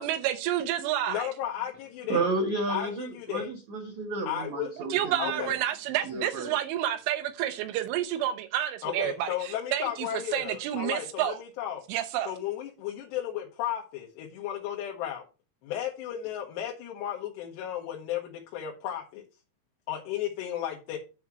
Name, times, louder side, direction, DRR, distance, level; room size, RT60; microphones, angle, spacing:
voice 1, 0.0-1.3 4.8-11.4 11.9-12.3, right 12 dB, 85° right, 3.5 m, -30 dB
voice 2, 1.1-2.3 2.7-3.5 4.3-4.7 5.2-5.6 8.8-11.8 12.3-15.2 15.6-19.2 19.9-21.0, left 11 dB, 70° left, 3.0 m, -34 dB
voice 3, 2.1-5.5 6.0-6.5, right 3 dB, 65° right, 1.9 m, -31 dB
9.5 x 4.3 x 5.9 m
omnidirectional pair, 5.6 m